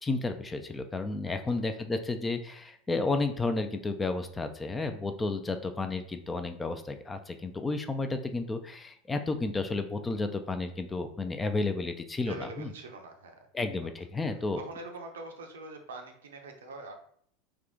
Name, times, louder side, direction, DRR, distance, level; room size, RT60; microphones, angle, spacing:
voice 1, 0.0-12.7 13.5-14.6, left 3 dB, 15° left, 8 dB, 0.4 m, -32 dB
voice 2, 1.3-1.6 12.3-13.5 14.6-16.9, right 2 dB, 70° right, 4 dB, 0.6 m, -44 dB
3.6 x 2.4 x 3.4 m, 0.62 s
figure-of-eight pair, 80°, 0 cm